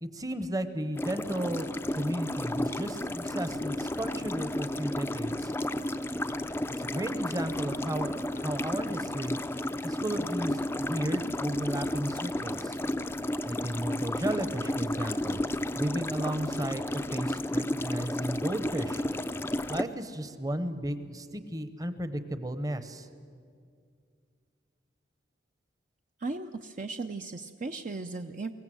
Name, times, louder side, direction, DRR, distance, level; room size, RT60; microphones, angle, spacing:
voice 1, 0.0-5.5 6.8-9.4 9.8-12.8 13.4-15.4 15.8-19.0 19.7-23.1, right 1 dB, 20° right, 11 dB, 0.9 m, -34 dB
water bubbling, 1.0-19.8, left 1 dB, 10° left, 0.5 m, -32 dB
voice 2, 26.2-28.5, right 3 dB, 45° right, 6 dB, 0.6 m, -36 dB
22.5 x 18.0 x 7.7 m, 2.2 s
head